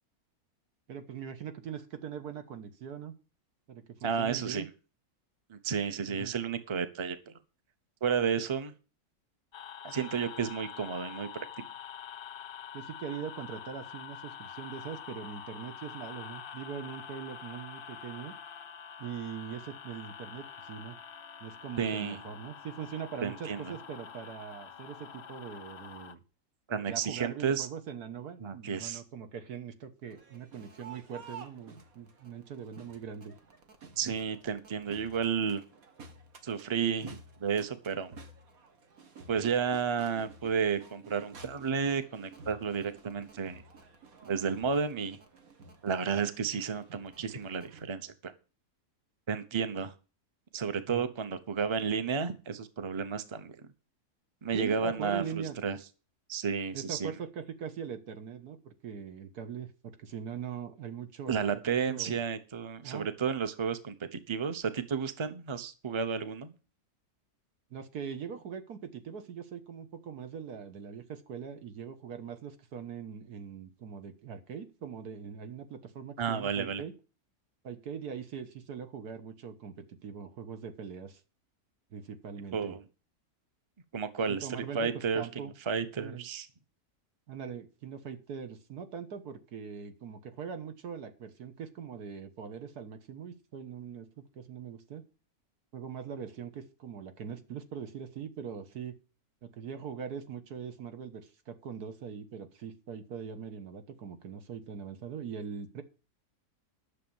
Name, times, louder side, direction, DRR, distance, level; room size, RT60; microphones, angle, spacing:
voice 1, 0.9-3.1 3.7-4.7 6.1-6.4 12.7-18.3 19.0-21.0 21.4-26.2 26.8-33.3 50.9-51.1 54.5-55.6 56.7-62.2 62.8-63.1 67.7-77.0 77.6-81.2 81.9-82.8 84.3-85.5 86.0-86.3 87.3-95.1 95.7-99.0 99.4-105.8, right 7 dB, 85° right, 8 dB, 1.8 m, -42 dB
voice 2, 4.0-4.6 5.5-7.3 8.0-8.7 9.8-11.3 21.8-22.2 23.2-23.7 26.7-27.7 28.4-29.0 34.0-35.6 36.4-38.2 39.3-43.6 44.2-45.2 45.8-48.3 49.3-49.9 50.5-53.5 54.4-55.8 56.3-57.1 61.3-66.5 76.2-76.8 82.5-82.8 83.9-84.5 84.7-85.3 85.7-86.5, right 6 dB, 25° right, 11 dB, 0.7 m, -32 dB
sound 1, 9.5-26.2, left 8 dB, 50° left, 0.7 m, -46 dB
Crowd, 30.1-47.8, right 4 dB, 65° right, 1.9 m, -53 dB
10.5 x 6.7 x 7.1 m, 0.34 s
omnidirectional pair, 1.6 m